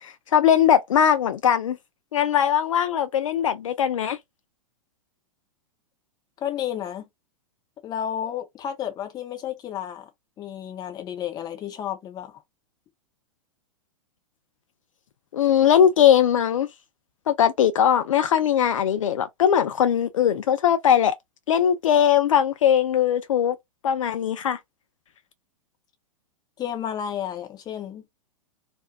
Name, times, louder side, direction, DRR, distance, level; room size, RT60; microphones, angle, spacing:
voice 1, 0.0-1.8 2.1-4.2 15.3-16.7 17.3-21.1 21.5-23.6 23.8-24.6, left 9 dB, 65° left, 0.4 m, -20 dB
voice 2, 6.4-7.0 7.8-10.1 10.4-12.4 26.6-28.0, left 10 dB, 20° left, 0.7 m, -32 dB
2.5 x 2.1 x 2.6 m
figure-of-eight pair, 105°, 18 cm